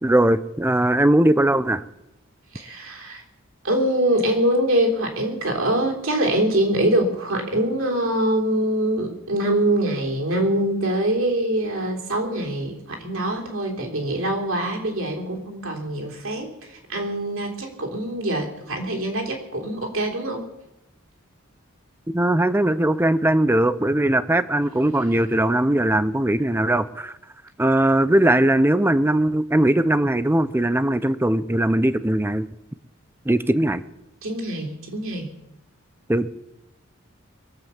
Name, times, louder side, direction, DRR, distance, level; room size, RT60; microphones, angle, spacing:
voice 1, 0.0-1.8 22.1-27.1 27.6-32.5 33.3-33.8 36.1-36.3, right 1 dB, 10° right, 15 dB, 0.6 m, -20 dB
voice 2, 2.5-3.2 3.6-20.5 34.2-35.3, right 1 dB, 70° right, 1 dB, 3.5 m, -24 dB
23.0 x 7.8 x 7.2 m, 0.89 s
head